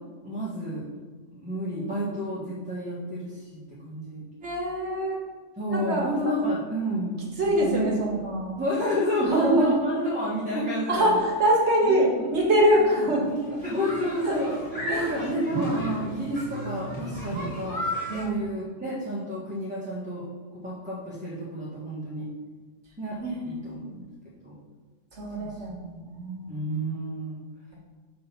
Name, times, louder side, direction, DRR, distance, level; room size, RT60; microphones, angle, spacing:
voice 1, 0.2-0.8 1.3-4.2 5.6-7.2 7.4-8.0 8.6-11.2 11.8-12.3 13.6-14.5 14.9-17.8 18.2-20.3 20.5-22.3 23.0-23.8 24.4-24.5 25.4-25.5 26.5-27.4, equal, 5° right, -8 dB, 1.2 m, -30 dB
voice 2, 4.4-5.2 5.7-6.1 7.4-8.6 9.2-9.8 10.9-13.6 14.3-14.4 14.8-15.1 18.1-18.4 23.2-24.0 25.1-26.5, right 1 dB, 60° right, -2 dB, 1.4 m, -24 dB
sound 1, 13.2-18.3, right 1 dB, 25° left, 1.9 m, -34 dB
5.7 x 3.8 x 5.7 m, 1.4 s
omnidirectional pair, 1.3 m